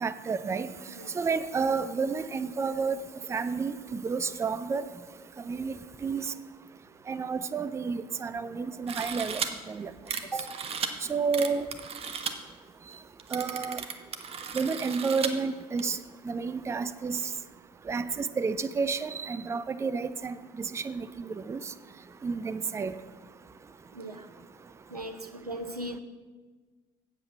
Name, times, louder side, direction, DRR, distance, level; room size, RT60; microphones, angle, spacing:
voice 1, 0.0-0.7 1.1-3.0 3.3-4.8 5.5-5.8 6.0-6.3 7.1-9.4 9.7-9.9 11.1-11.7 13.3-13.8 14.5-16.0 16.2-17.2 17.9-21.6 22.2-23.0, right 5 dB, 15° right, 12 dB, 0.4 m, -30 dB
sound 1, 8.9-9.5 10.1-10.9 11.3-12.3 12.9-13.0 13.2-15.3 15.8-15.9, right 7 dB, 30° right, 0.8 m, -35 dB
voice 2, 23.9-24.3 24.9-26.0, right 1 dB, 90° right, 8 dB, 0.6 m, -37 dB
8.1 x 7.8 x 5.8 m, 1.4 s
figure-of-eight pair, 60°, 19 cm